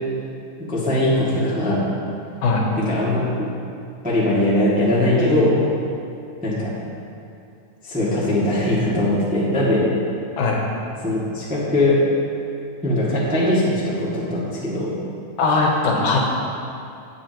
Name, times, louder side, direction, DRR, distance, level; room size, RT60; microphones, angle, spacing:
voice 1, 0.6-1.9 2.8-3.5 4.0-5.6 6.4-6.7 7.8-9.9 11.0-12.0 12.8-14.9, left 1 dB, 5° right, -8 dB, 1.2 m, -20 dB
voice 2, 15.4-16.2, left 3 dB, 75° left, -1 dB, 2.6 m, -19 dB
18.0 x 7.3 x 3.0 m, 2.5 s
omnidirectional pair, 3.8 m